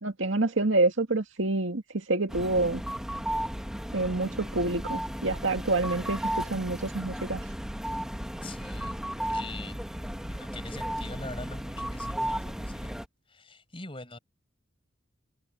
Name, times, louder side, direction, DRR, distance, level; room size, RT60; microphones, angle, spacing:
voice 1, 0.0-2.8 3.9-7.4, right 2 dB, 70° right, 2.1 m, -27 dB
sound 1, 2.3-13.1, equal, 5° right, 1.3 m, -34 dB
voice 2, 8.4-9.8 10.3-13.0 13.3-14.2, left 2 dB, 25° left, 7.4 m, -43 dB
head